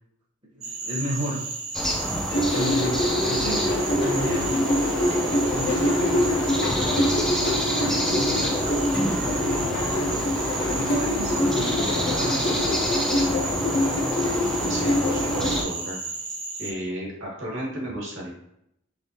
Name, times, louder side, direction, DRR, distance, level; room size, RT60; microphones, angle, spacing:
voice 1, 0.5-1.4 2.5-4.7 5.5-10.1 10.7-12.7, equal, 25° right, -7 dB, 0.8 m, -33 dB
Cricket / Frog, 0.6-16.7, right 4 dB, 85° right, 0.8 m, -33 dB
sound 1, 1.7-15.6, equal, 5° left, 0.4 m, -29 dB
sound 2, 2.3-15.6, left 1 dB, 50° left, 0.7 m, -25 dB
voice 2, 14.7-16.0 16.6-18.3, right 1 dB, 65° right, -2 dB, 1.2 m, -33 dB
3.4 x 3.1 x 2.7 m, 0.77 s
head